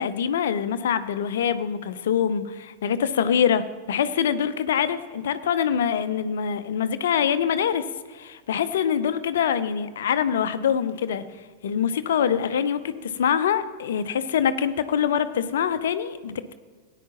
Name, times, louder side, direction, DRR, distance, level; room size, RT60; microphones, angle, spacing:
voice 1, 0.0-7.9 8.1-11.2 11.6-16.5, left 8 dB, 60° left, 12 dB, 0.6 m, -24 dB
17.5 x 9.9 x 2.9 m, 1.5 s
figure-of-eight pair, 90°, 0 cm